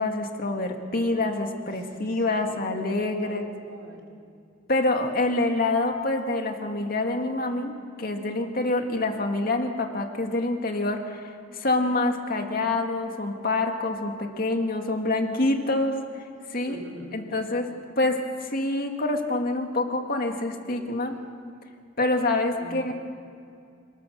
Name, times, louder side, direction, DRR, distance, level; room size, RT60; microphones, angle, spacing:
voice 1, 0.0-3.4 4.7-16.0 16.5-16.8 17.1-21.2 22.0-22.9, left 2 dB, 45° left, 4 dB, 2.2 m, -26 dB
voice 2, 1.6-2.6 3.2-4.1 16.5-17.2 22.6-22.9, right 1 dB, 80° right, -1 dB, 4.5 m, -44 dB
27.5 x 19.5 x 6.9 m, 2.4 s
head